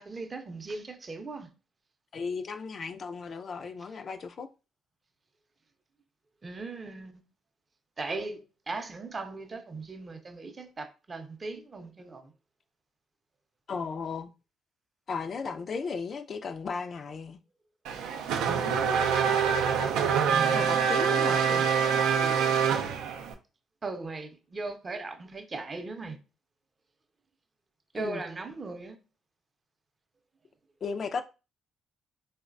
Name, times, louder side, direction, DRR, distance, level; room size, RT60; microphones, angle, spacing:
voice 1, 0.0-1.5 6.4-7.2 8.0-8.4 8.7-12.3 18.4-18.9 20.3-20.7 23.8-26.2 27.9-29.0, right 3 dB, 35° right, 0.5 m, -38 dB
voice 2, 2.1-4.5 13.7-14.3 15.1-17.4 20.4-21.7 28.0-28.2 30.8-31.2, left 5 dB, 50° left, 0.3 m, -35 dB
Race car auto racing / Accelerating revving vroom, 17.8-23.3, right 7 dB, 80° right, 0.3 m, -25 dB
3.8 x 2.0 x 2.5 m
supercardioid pair, 70°, 0 cm